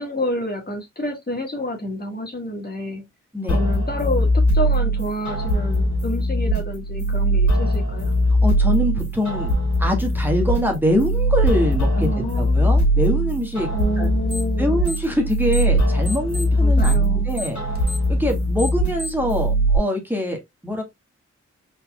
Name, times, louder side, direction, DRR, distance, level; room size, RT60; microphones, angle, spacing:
voice 1, 0.0-3.1 3.5-8.1 12.0-12.9 13.7-14.8 16.6-17.3, equal, 35° left, 1.7 m, -29 dB
sound 1, 3.5-19.8, right 1 dB, 75° left, 2.2 m, -21 dB
voice 2, 8.3-13.7 14.0-14.1 14.6-20.8, left 1 dB, 5° right, 1.7 m, -24 dB
sound 2, 14.3-14.6 14.8-15.8 16.0-19.3, left 1 dB, 35° right, 1.7 m, -33 dB
4.2 x 4.1 x 2.3 m
cardioid pair, 60°, 29 cm